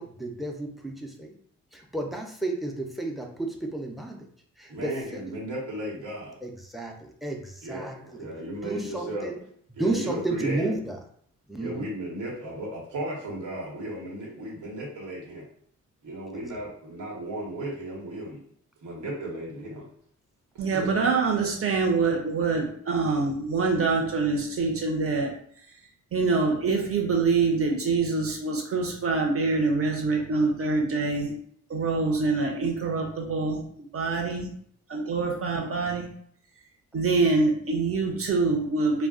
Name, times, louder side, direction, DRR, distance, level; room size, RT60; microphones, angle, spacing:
voice 1, 0.0-1.3 1.7-4.2 4.6-5.2 6.4-8.3 8.6-9.4 9.7-11.0 11.5-11.9, right 2 dB, ahead, 2 dB, 0.6 m, -32 dB
voice 2, 4.7-6.3 7.6-9.3 9.7-10.7 11.6-15.4 16.0-18.4 18.8-19.8 20.7-20.9, right 1 dB, 90° right, -4 dB, 1.2 m, -35 dB
voice 3, 20.6-25.3 26.1-31.3 31.7-33.6 33.9-34.5 34.9-36.1 36.9-39.1, right 4 dB, 45° right, 1 dB, 0.9 m, -25 dB
2.3 x 2.2 x 3.7 m, 0.63 s
cardioid pair, 85°, 30 cm